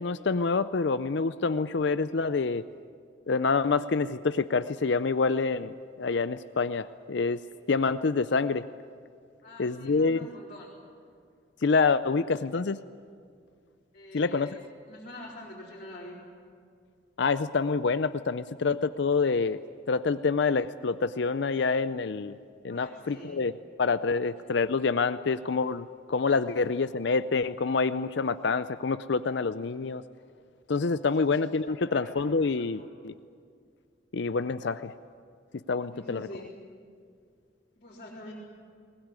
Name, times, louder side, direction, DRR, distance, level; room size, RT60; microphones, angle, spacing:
voice 1, 0.0-2.6 3.3-7.4 7.7-8.6 9.6-10.3 11.6-12.8 14.1-14.5 17.2-19.6 19.9-22.3 22.6-23.5 23.8-30.0 30.7-33.1 34.1-34.9 35.7-36.3, left 4 dB, 65° left, 12 dB, 0.5 m, -27 dB
voice 2, 9.4-10.7 13.9-14.6 14.9-16.2 22.7-23.4 24.2-24.3 31.2-31.4 31.8-32.1 32.5-32.9 35.9-36.4 37.8-38.3, left 1 dB, 35° left, -6 dB, 4.0 m, -46 dB
21.0 x 20.0 x 9.7 m, 2.2 s
head